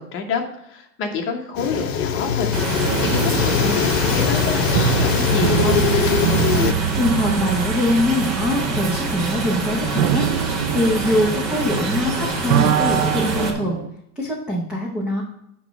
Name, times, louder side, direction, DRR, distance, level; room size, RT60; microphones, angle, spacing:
voice 1, 0.0-5.8, left 4 dB, 25° left, 3 dB, 1.0 m, -28 dB
sound 1, 1.6-6.7, left 9 dB, 55° left, 0.8 m, -21 dB
sound 2, 2.5-13.5, right 3 dB, 35° right, 1.4 m, -26 dB
sound 3, 2.8-12.1 12.4-13.9, right 10 dB, 60° right, 0.5 m, -24 dB
voice 2, 6.7-13.8 14.2-15.2, left 1 dB, ahead, -4 dB, 0.4 m, -23 dB
8.8 x 3.1 x 5.9 m, 0.79 s
hypercardioid pair, 130°, 48 cm